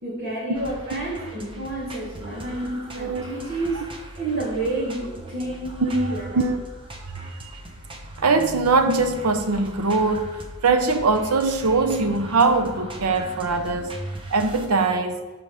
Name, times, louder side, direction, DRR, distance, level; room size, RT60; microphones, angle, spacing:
voice 1, 0.0-3.8 4.2-6.4, right 2 dB, 55° right, -11 dB, 2.8 m, -29 dB
sound 1, 0.5-14.7, right 1 dB, 25° right, 0.8 m, -39 dB
voice 2, 5.8-6.6 7.0-7.5 8.2-10.3 10.6-13.9 14.3-15.2, right 3 dB, 90° right, 8 dB, 0.6 m, -22 dB
12.0 x 4.9 x 3.4 m, 1.2 s
head